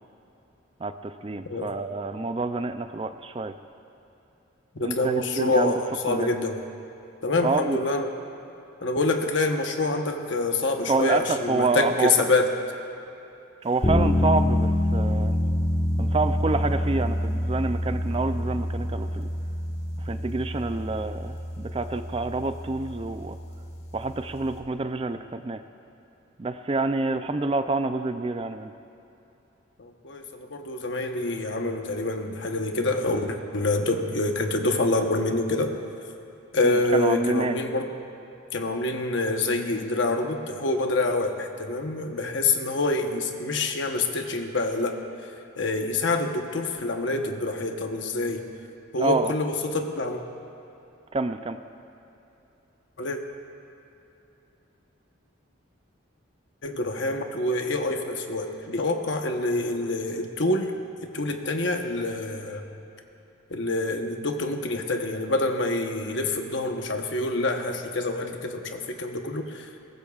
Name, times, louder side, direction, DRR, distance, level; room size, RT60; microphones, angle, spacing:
voice 1, 0.8-3.5 4.8-5.7 6.1-6.3 7.4-7.8 10.9-12.1 13.6-15.3 16.0-19.3 20.0-23.4 23.9-25.6 26.4-28.7 36.6-37.5 49.0-49.3 51.1-51.6, right 3 dB, 25° right, 9 dB, 0.4 m, -27 dB
voice 2, 4.7-6.6 7.2-8.1 8.8-12.5 29.8-35.8 36.5-37.9 38.5-45.0 45.6-48.4 48.9-50.2 53.0-53.2 56.6-60.7 61.1-62.7 63.5-69.8, left 2 dB, 65° left, 4 dB, 1.0 m, -26 dB
sound 1, 13.8-24.6, left 1 dB, 35° left, 1.5 m, -27 dB
22.0 x 19.0 x 2.4 m, 2.9 s
head